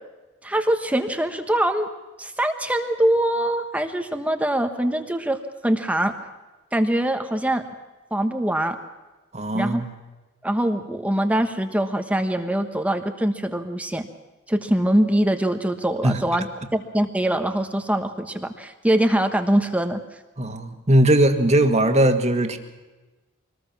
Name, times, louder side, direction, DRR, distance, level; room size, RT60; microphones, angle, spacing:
voice 1, 0.4-1.9 2.2-5.4 5.6-6.1 6.7-7.6 8.1-8.8 9.5-9.8 10.4-14.1 14.5-20.0, right 1 dB, 5° right, 6 dB, 1.3 m, -23 dB
voice 2, 9.3-9.9 16.0-16.2 20.4-22.6, right 1 dB, 35° right, 6 dB, 2.0 m, -19 dB
24.5 x 20.0 x 6.0 m, 1.2 s
head